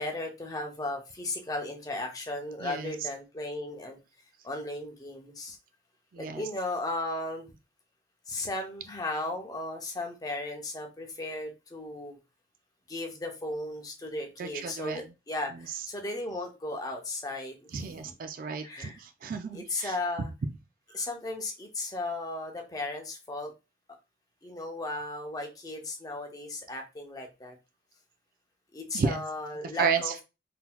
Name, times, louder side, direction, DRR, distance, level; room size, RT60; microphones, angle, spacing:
voice 1, 0.0-4.0 4.4-5.6 6.2-7.5 8.3-12.2 12.9-18.1 18.6-19.0 19.5-20.3 20.9-23.5 24.4-27.6 28.7-30.1, left 2 dB, 20° left, 2 dB, 0.7 m, -36 dB
voice 2, 2.6-2.9 6.1-6.5 14.4-15.0 15.5-15.8 17.7-20.0 20.9-21.0 28.9-29.2 29.8-30.2, right 5 dB, 50° right, 8 dB, 0.3 m, -32 dB
3.8 x 2.8 x 2.2 m, 0.27 s
head